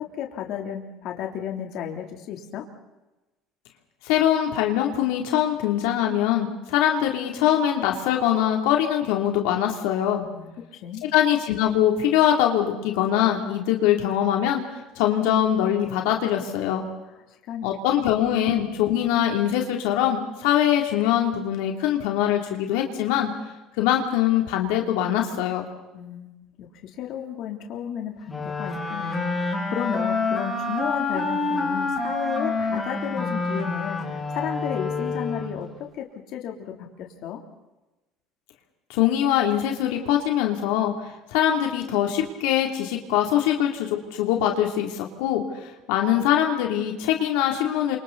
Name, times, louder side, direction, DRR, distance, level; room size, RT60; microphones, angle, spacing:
voice 1, 0.0-2.6 10.3-11.0 17.5-17.7 25.9-35.7 35.9-37.4, left 9 dB, 60° left, 2 dB, 3.4 m, -33 dB
voice 2, 4.0-10.2 11.1-16.9 17.6-23.3 23.8-25.7 38.9-48.0, left 11 dB, 85° left, 2 dB, 3.2 m, -23 dB
sound 1, 28.3-35.7, left 3 dB, 10° left, 5.4 m, -27 dB
29.5 x 26.5 x 4.2 m, 1.1 s
cardioid pair, 135°, 0 cm